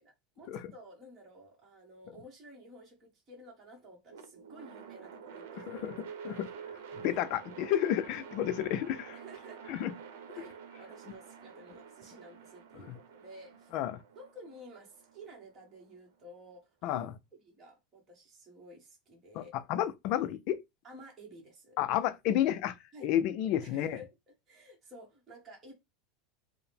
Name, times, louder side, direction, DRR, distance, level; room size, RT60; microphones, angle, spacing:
voice 1, 0.0-5.9 6.2-6.3 7.0-7.2 8.4-8.5 9.1-9.6 10.3-13.7 14.1-17.1 17.4-19.6 20.8-21.8 22.9-23.1 23.6-24.1 24.5-25.7, right 1 dB, 20° right, 1.2 m, -52 dB
sound 1, 4.1-16.2, right 7 dB, 80° right, 0.8 m, -49 dB
voice 2, 5.7-6.5 6.9-9.2 9.7-9.9 13.7-14.0 16.8-17.1 19.4-20.6 21.8-22.8 23.0-24.0, left 11 dB, 40° left, 0.4 m, -31 dB
4.7 x 2.1 x 3.4 m
supercardioid pair, 175°, 0 cm